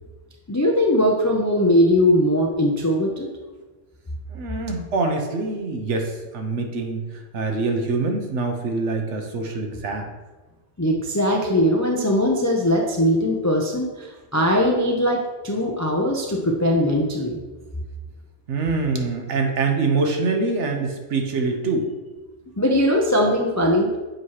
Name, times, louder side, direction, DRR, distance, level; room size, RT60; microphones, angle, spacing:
voice 1, 0.5-3.3 10.8-17.4 22.6-24.0, left 1 dB, 30° left, 0 dB, 0.3 m, -20 dB
voice 2, 4.3-7.0 7.3-10.1 18.5-21.9, right 3 dB, 70° right, 4 dB, 1.1 m, -24 dB
7.5 x 2.9 x 4.7 m, 1.2 s
omnidirectional pair, 1.3 m